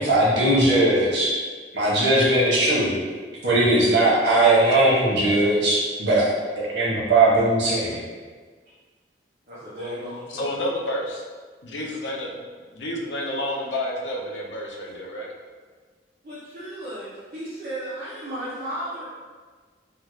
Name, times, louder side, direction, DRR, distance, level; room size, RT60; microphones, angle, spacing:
voice 1, 0.0-1.3 1.7-2.9 3.4-6.2 6.5-8.0, right 2 dB, 80° right, -6 dB, 1.2 m, -19 dB
voice 2, 9.5-10.5 16.2-19.0, right 1 dB, 45° right, -12 dB, 0.7 m, -34 dB
voice 3, 10.3-11.2 11.6-12.4 12.7-15.3, left 1 dB, 85° left, -2 dB, 0.6 m, -30 dB
3.6 x 2.1 x 3.1 m, 1.5 s
head